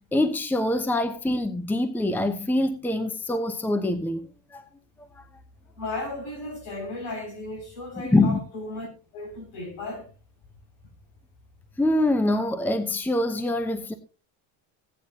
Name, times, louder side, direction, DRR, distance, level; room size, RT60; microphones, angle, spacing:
voice 1, 0.0-4.6 5.2-5.3 8.1-8.4 11.8-13.9, left 1 dB, 5° left, 0.8 m, -24 dB
voice 2, 5.8-10.1, left 2 dB, 65° left, 6.0 m, -35 dB
16.5 x 9.1 x 2.8 m
cardioid pair, 115°, 41 cm